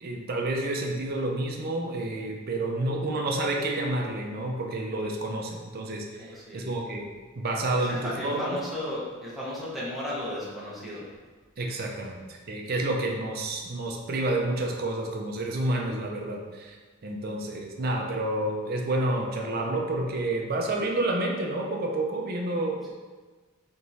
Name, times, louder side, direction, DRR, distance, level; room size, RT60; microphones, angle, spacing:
voice 1, 0.0-7.1 7.4-8.6 11.6-16.8 17.0-22.8, right 2 dB, 45° right, 0 dB, 0.5 m, -29 dB
voice 2, 6.2-6.7 7.8-11.1, left 1 dB, ahead, -8 dB, 0.9 m, -35 dB
3.5 x 3.0 x 4.0 m, 1.4 s
head